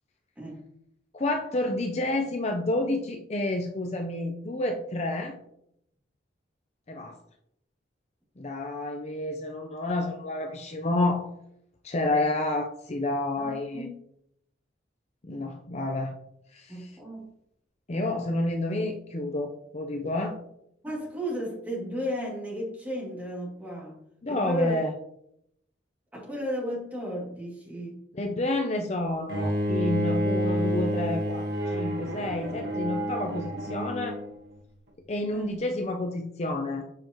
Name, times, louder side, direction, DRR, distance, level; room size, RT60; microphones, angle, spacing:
voice 1, 1.1-5.4 6.9-7.2 8.4-11.3 11.8-13.9 15.2-16.1 16.5-16.9 17.9-20.4 24.2-24.9 28.1-34.2 35.1-36.8, left 2 dB, 35° left, 3 dB, 0.6 m, -29 dB
voice 2, 13.4-13.9 16.7-17.3 20.8-24.0 24.3-24.8 26.1-28.0 35.3-35.5, equal, 10° right, -5 dB, 2.4 m, -34 dB
Bowed string instrument, 29.3-34.3, equal, 60° right, 1.4 m, -29 dB
7.6 x 5.0 x 3.0 m, 0.74 s
head